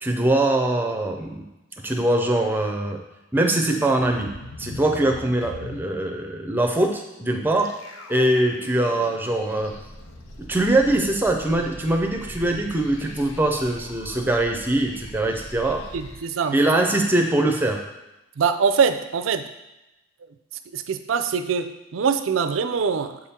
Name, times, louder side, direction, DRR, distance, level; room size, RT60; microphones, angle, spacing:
voice 1, 0.0-1.4 1.8-3.0 3.3-4.3 4.6-7.7 8.1-9.7 10.4-15.8 16.5-17.8, right 1 dB, 10° right, 2 dB, 0.6 m, -22 dB
sound 1, 4.0-5.8 7.5-17.4, left 2 dB, 80° left, 0.7 m, -43 dB
sound 2, 9.6-16.2, equal, 30° left, 1.3 m, -42 dB
voice 2, 15.9-16.6 18.4-19.5 20.7-23.2, right 6 dB, 70° right, 10 dB, 0.4 m, -23 dB
7.4 x 3.7 x 4.3 m, 0.98 s
head